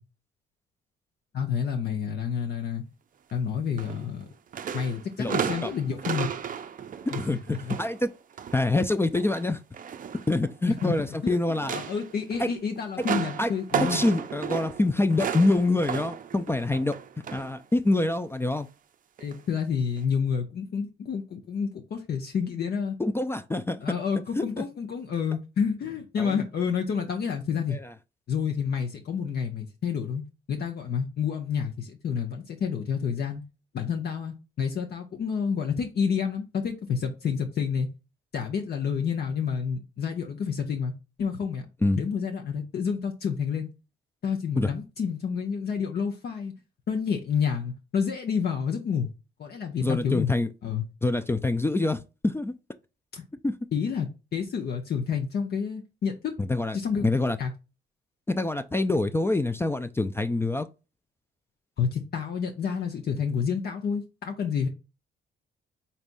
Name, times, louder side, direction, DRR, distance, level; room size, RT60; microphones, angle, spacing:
voice 1, 1.3-2.8 3.3-4.3 4.7-6.3 7.1-7.8 10.7-14.0 19.2-23.0 23.8-27.8 28.3-30.2 30.5-33.4 33.7-37.9 38.3-40.9 41.2-41.7 42.0-43.7 44.2-46.5 46.9-49.1 49.4-50.3 50.6-50.8 53.1-53.2 53.7-56.3 56.7-57.0 57.4-57.5 61.8-64.7, left 6 dB, 55° left, 0.8 m, -29 dB
sound 1, 3.8-4.2 4.5-8.7 9.0-11.1 11.5-17.6 17.9-18.1 19.2-19.4 20.0-20.1, right 8 dB, 45° right, 0.5 m, -34 dB
voice 2, 7.8-8.1 8.5-9.6 10.3-11.7 12.4-12.5 13.4-13.5 13.9-16.9 17.3-18.7 23.0-23.8 24.4-24.6 26.2-26.3 27.7-27.9 41.8-42.0 44.6-44.7 49.8-50.5 51.0-52.5 53.4-53.5 56.4-56.8 57.0-57.4 58.3-60.7, left 2 dB, 10° left, 0.3 m, -25 dB
4.1 x 3.4 x 2.5 m
cardioid pair, 90°, 20 cm